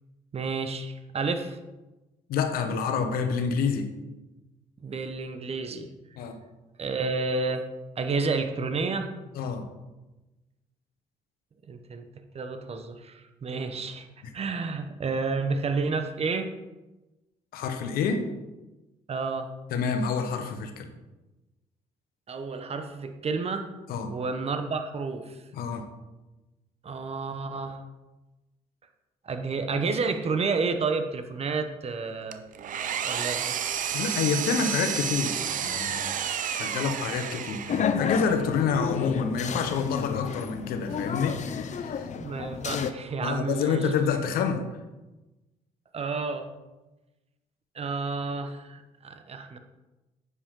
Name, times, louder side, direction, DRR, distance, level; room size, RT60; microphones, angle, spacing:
voice 1, 0.3-1.6 4.8-5.9 6.8-7.6 8.0-9.1 11.7-12.1 12.3-14.1 14.3-16.5 19.1-19.5 22.3-23.7 24.1-25.4 26.8-27.8 29.2-32.4 33.0-33.6 42.2-43.9 45.9-46.5 47.7-49.6, right 4 dB, 40° right, 7 dB, 1.1 m, -30 dB
voice 2, 2.3-3.9 6.2-6.4 9.3-9.7 17.5-18.3 19.7-20.9 23.9-24.1 25.5-25.9 33.9-36.1 36.5-37.6 38.0-42.1 43.2-44.6, left 6 dB, 75° left, 7 dB, 1.2 m, -28 dB
Engine, 32.3-38.0, right 8 dB, 60° right, 0.7 m, -31 dB
sound 1, 37.7-42.9, left 6 dB, 50° left, 0.8 m, -31 dB
9.7 x 8.4 x 3.8 m, 1.1 s
supercardioid pair, 65°, 15 cm